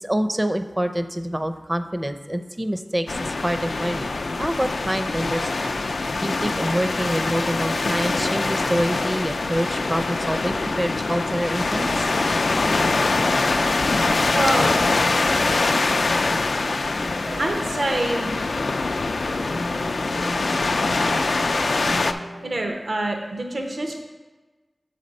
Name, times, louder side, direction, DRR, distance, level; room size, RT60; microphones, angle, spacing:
voice 1, 0.0-12.1, equal, 20° right, 9 dB, 0.5 m, -27 dB
sound 1, 3.1-22.1, left 3 dB, 85° left, 0.3 m, -23 dB
sound 2, 11.7-22.7, equal, 90° right, 2.0 m, -41 dB
voice 2, 14.3-14.7 17.4-18.3 22.1-23.9, right 1 dB, 70° right, 3 dB, 0.7 m, -26 dB
7.3 x 4.2 x 5.2 m, 1.3 s
wide cardioid pair, 45°, 0 cm